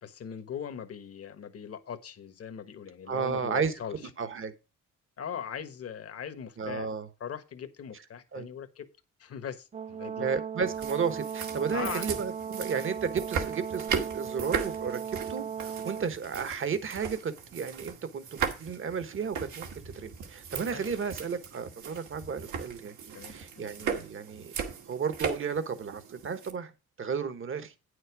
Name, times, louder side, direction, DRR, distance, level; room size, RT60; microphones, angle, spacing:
voice 1, 0.0-4.1 5.2-6.9 7.2-8.9 9.2-10.3 11.7-12.1 20.7-21.1 23.1-23.9, left 7 dB, 50° left, 1.4 m, -40 dB
voice 2, 3.1-3.7 4.2-4.5 6.6-7.1 8.3-8.5 10.2-15.0 15.3-19.7 19.9-22.9 23.3-24.5 24.9-26.7 27.0-27.7, right 6 dB, 45° right, 1.4 m, -33 dB
Brass instrument, 9.7-16.1, right 8 dB, 25° right, 0.4 m, -37 dB
sound 1, 10.7-26.5, right 6 dB, 80° right, 2.1 m, -38 dB
9.1 x 6.6 x 4.8 m
cardioid pair, 90°, 30 cm